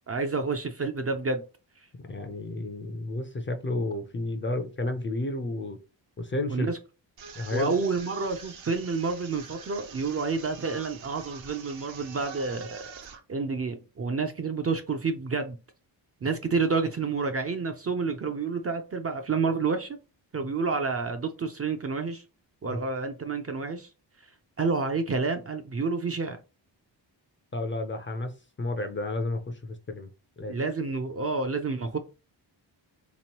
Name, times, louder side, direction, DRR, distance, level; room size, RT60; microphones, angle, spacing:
voice 1, 0.1-1.4 6.5-6.8 7.5-12.8 13.3-15.6 16.2-20.0 20.3-22.2 22.6-23.9 24.6-26.4 30.5-32.0, right 4 dB, 35° right, 0.4 m, -29 dB
voice 2, 2.1-5.8 6.2-6.7 7.3-7.7 22.7-22.8 27.5-28.3 28.6-30.1 30.4-30.6, left 2 dB, 25° left, 0.4 m, -31 dB
sound 1, 7.2-13.2, right 6 dB, 75° right, 0.8 m, -46 dB
3.7 x 3.0 x 2.8 m
wide cardioid pair, 160°, 46 cm